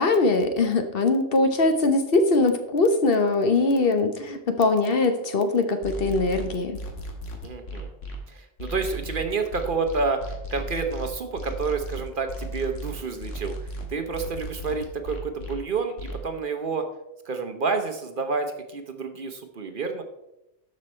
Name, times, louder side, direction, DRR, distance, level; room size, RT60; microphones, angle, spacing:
voice 1, 0.0-6.8, left 3 dB, 55° left, 7 dB, 1.0 m, -22 dB
sound 1, 5.8-8.2 8.6-15.6 16.0-16.2, equal, 90° left, 1.8 m, -35 dB
voice 2, 7.4-7.9 8.3-16.9 17.2-20.0, right 4 dB, 50° right, 6 dB, 0.9 m, -29 dB
12.5 x 5.3 x 4.3 m, 0.91 s
omnidirectional pair, 1.2 m